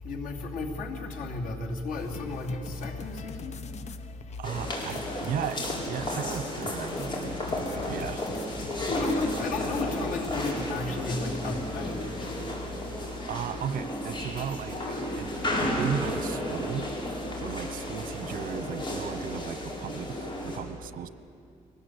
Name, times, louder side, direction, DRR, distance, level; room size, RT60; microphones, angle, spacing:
voice 1, 0.0-3.6 8.9-12.4, left 3 dB, 90° left, 1 dB, 3.0 m, -33 dB
sound 1, 1.9-10.8, left 6 dB, 55° left, 1.0 m, -43 dB
sound 2, 4.4-20.6, equal, 35° left, 4.7 m, -33 dB
voice 2, 4.4-7.4 7.9-8.2 12.9-16.9 17.4-21.1, right 8 dB, 80° right, 14 dB, 1.0 m, -36 dB
23.5 x 19.0 x 8.3 m, 2.5 s
cardioid pair, 140°, 14 cm